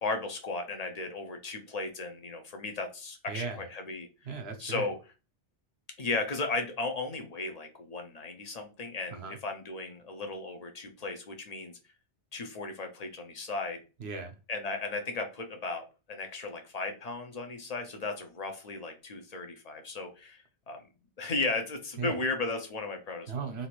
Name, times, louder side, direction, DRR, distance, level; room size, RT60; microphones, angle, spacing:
voice 1, 0.0-4.1 4.6-5.0 6.0-11.7 12.3-13.8 14.5-20.8 21.2-23.3, left 3 dB, 45° left, 5 dB, 0.6 m, -35 dB
voice 2, 3.3-3.6 4.3-4.9 9.1-9.4 14.0-14.4 22.0-22.2 23.3-23.7, right 4 dB, 65° right, 6 dB, 0.9 m, -36 dB
2.8 x 2.5 x 3.0 m, 0.31 s
omnidirectional pair, 1.2 m